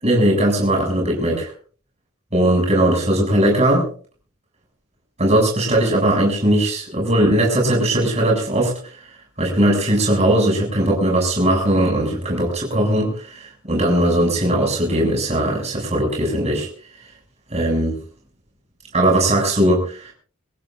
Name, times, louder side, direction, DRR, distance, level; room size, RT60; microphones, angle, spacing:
voice 1, 0.0-1.5 2.3-3.9 5.2-9.1 9.4-16.7 17.5-18.0 18.9-20.1, right 1 dB, 30° right, -1 dB, 7.4 m, -19 dB
27.5 x 15.5 x 2.6 m, 0.44 s
head